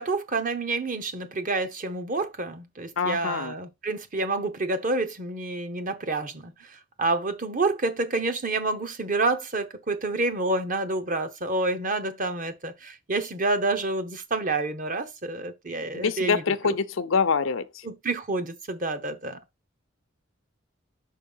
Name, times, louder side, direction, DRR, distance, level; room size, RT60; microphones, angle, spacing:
voice 1, 0.0-6.7 7.0-16.7 17.8-19.4, right 2 dB, 40° right, 0.9 m, -28 dB
voice 2, 3.0-3.5 15.9-17.7, left 5 dB, 75° left, 0.6 m, -25 dB
5.6 x 4.6 x 5.5 m
head